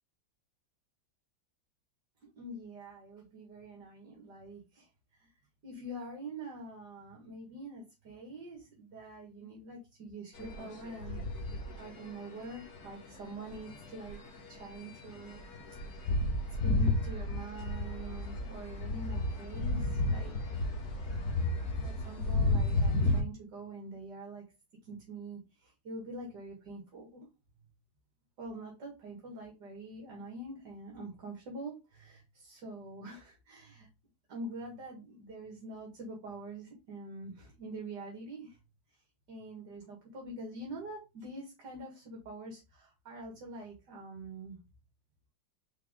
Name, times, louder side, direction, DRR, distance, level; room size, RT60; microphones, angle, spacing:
voice 1, 2.2-4.9 5.2-5.3 5.6-11.3 11.8-14.2 14.5-15.4 16.6-20.4 21.8-24.4 24.8-27.3 28.4-33.9 34.3-38.6 39.3-44.6, right 2 dB, 60° right, 0 dB, 2.4 m, -45 dB
sound 1, 10.4-12.0 12.6-12.8 13.5-14.1 14.4-14.5 14.7-14.8 15.0-23.2, left 2 dB, 50° left, 2.0 m, -32 dB
5.8 x 4.7 x 3.7 m, 0.27 s
omnidirectional pair, 2.1 m